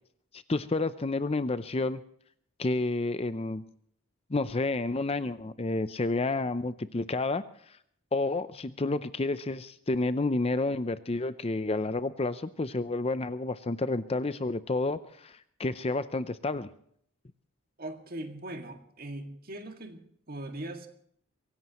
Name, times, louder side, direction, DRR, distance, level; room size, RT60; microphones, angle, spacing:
voice 1, 0.3-2.0 2.6-3.6 4.3-7.8 8.1-16.7, left 2 dB, 25° left, 13 dB, 0.5 m, -30 dB
voice 2, 17.8-20.9, right 1 dB, 40° right, 5 dB, 2.0 m, -40 dB
23.5 x 17.0 x 3.0 m, 0.65 s
head